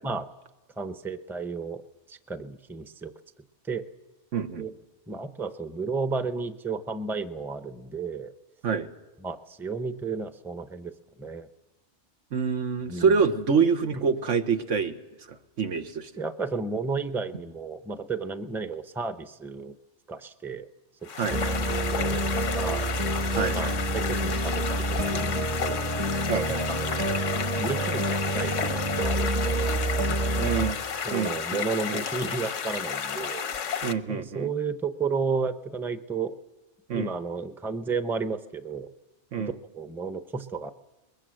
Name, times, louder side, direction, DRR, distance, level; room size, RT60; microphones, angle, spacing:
voice 1, 0.8-1.8 2.1-3.1 3.7-3.8 4.6-4.7 5.1-8.3 9.2-10.9 11.2-11.5 12.9-13.1 13.9-14.0 16.2-19.7 20.1-20.7 21.6-22.9 23.5-25.9 26.8-27.2 27.6-30.1 30.4-30.5 31.0-33.5 33.8-36.4 36.9-38.9 39.4-40.7, right 4 dB, ahead, 10 dB, 0.6 m, -33 dB
voice 2, 4.3-4.7 8.6-8.9 12.3-15.0 15.3-16.1 21.2-21.6 23.3-23.8 26.3-26.7 30.4-30.8 31.1-32.1 33.8-34.5 36.9-37.1 39.3-39.6, right 6 dB, 90° right, 7 dB, 1.6 m, -27 dB
sound 1, 21.0-33.9, left 7 dB, 85° left, 1.3 m, -32 dB
sound 2, 21.3-30.7, right 1 dB, 30° right, 1.0 m, -28 dB
22.0 x 20.5 x 7.8 m, 1.1 s
omnidirectional pair, 1.2 m